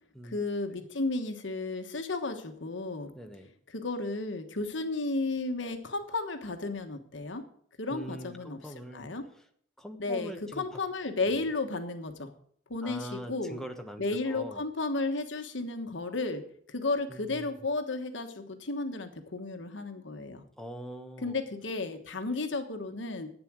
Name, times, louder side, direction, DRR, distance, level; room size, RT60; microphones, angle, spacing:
voice 1, 0.2-3.1 3.7-7.4 7.8-8.6 8.9-9.2 10.0-12.3 12.7-13.6 14.0-16.4 16.7-20.4 21.2-23.3, left 3 dB, 70° left, 7 dB, 1.3 m, -33 dB
voice 2, 3.1-3.5 7.9-9.1 9.8-10.8 11.3-11.4 12.8-14.6 17.1-17.6 20.6-21.4 22.3-22.4, equal, ahead, 4 dB, 1.1 m, -43 dB
11.0 x 9.1 x 6.2 m, 0.62 s
head